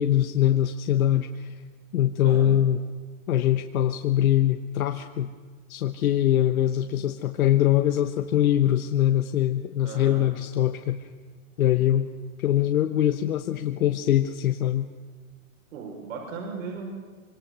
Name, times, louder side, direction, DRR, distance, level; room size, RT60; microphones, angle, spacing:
voice 1, 0.0-1.6 1.9-2.8 3.3-5.3 5.7-11.1 11.6-12.1 12.4-14.9, left 12 dB, 75° left, 6 dB, 1.3 m, -23 dB
voice 2, 9.8-10.2 15.7-16.9, right 5 dB, 65° right, -1 dB, 6.1 m, -36 dB
25.5 x 24.0 x 6.3 m, 1.5 s
hypercardioid pair, 155°, 42 cm